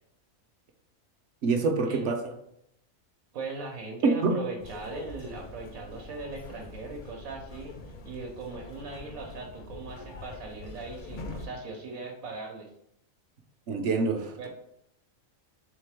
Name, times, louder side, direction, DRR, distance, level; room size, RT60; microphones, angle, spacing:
voice 1, 1.4-2.3 4.0-4.4 13.7-14.4, right 4 dB, 65° right, 4 dB, 0.8 m, -26 dB
voice 2, 3.3-12.7 14.4-14.5, right 4 dB, 85° right, 0 dB, 1.2 m, -39 dB
sound 1, 4.6-11.5, left 3 dB, 55° left, 0.5 m, -44 dB
3.7 x 3.6 x 3.3 m, 0.74 s
omnidirectional pair, 1.4 m